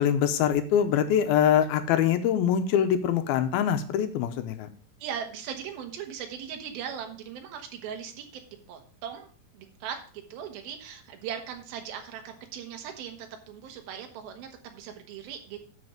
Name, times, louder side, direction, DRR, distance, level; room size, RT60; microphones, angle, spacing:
voice 1, 0.0-4.7, left 9 dB, 75° left, 8 dB, 2.4 m, -24 dB
voice 2, 5.0-8.3 8.7-10.0 10.3-15.7, right 8 dB, 70° right, 4 dB, 3.0 m, -39 dB
12.0 x 5.3 x 5.0 m, 0.43 s
omnidirectional pair, 4.8 m